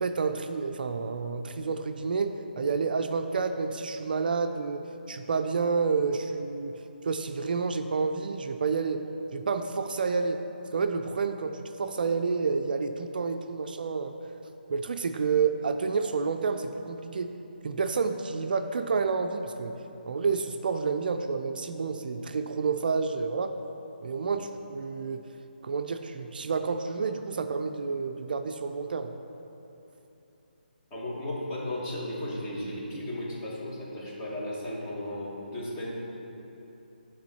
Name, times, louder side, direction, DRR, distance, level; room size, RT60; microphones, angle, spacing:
voice 1, 0.0-9.0 9.3-10.4 10.7-14.2 14.7-17.3 17.6-19.7 20.1-23.5 24.0-25.3 25.6-29.1, right 5 dB, 60° right, 7 dB, 0.3 m, -29 dB
voice 2, 30.9-35.9, left 1 dB, 25° left, -6 dB, 1.3 m, -35 dB
9.5 x 3.6 x 4.1 m, 3.0 s
hypercardioid pair, 155°, 6 cm